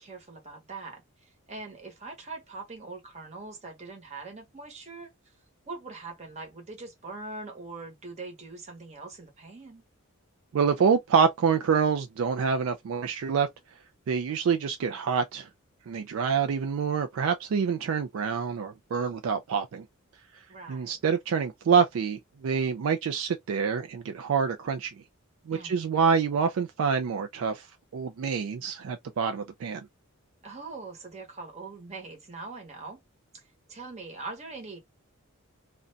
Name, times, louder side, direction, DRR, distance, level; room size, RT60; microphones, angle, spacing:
voice 1, 0.0-5.3 5.7-9.8 20.5-21.0 25.5-25.9 30.4-33.0 33.3-33.4 33.7-34.8, right 3 dB, 30° right, 0.9 m, -42 dB
voice 2, 10.5-13.5 14.1-15.5 15.9-19.8 20.7-24.9 25.5-27.7 27.9-29.9, right 6 dB, 65° right, 0.3 m, -26 dB
2.5 x 2.2 x 2.6 m
head